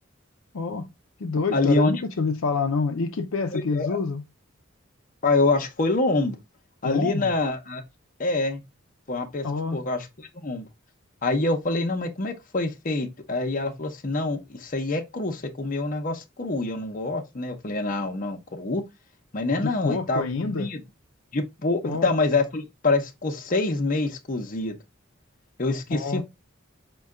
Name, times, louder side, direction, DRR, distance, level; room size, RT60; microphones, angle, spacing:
voice 1, 0.5-0.9 1.2-4.2 6.8-7.3 9.4-9.8 19.6-20.7 21.8-22.1 25.9-26.2, left 4 dB, 80° left, 0.5 m, -27 dB
voice 2, 1.5-1.9 3.5-4.0 5.2-6.4 6.8-7.8 8.2-8.6 9.1-9.5 9.7-10.1 10.3-10.7 11.2-18.8 19.3-20.8 21.3-24.8 25.6-26.2, left 2 dB, 40° left, 0.7 m, -26 dB
5.4 x 2.3 x 3.6 m
head